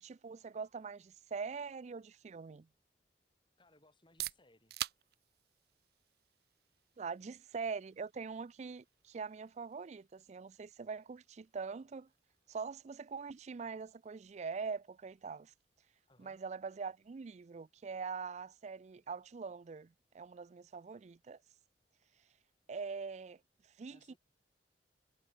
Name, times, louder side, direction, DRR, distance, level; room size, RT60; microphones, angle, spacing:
voice 1, 0.0-2.7 7.0-12.1 12.5-15.5 16.2-21.4 22.7-23.4 23.8-24.1, right 5 dB, 40° right, 0.4 m, -43 dB
voice 2, 3.6-4.8 16.1-16.4 23.9-24.2, left 2 dB, 30° left, 7.4 m, -66 dB
sound 1, 3.9-19.5, right 13 dB, 60° right, 0.8 m, -52 dB
head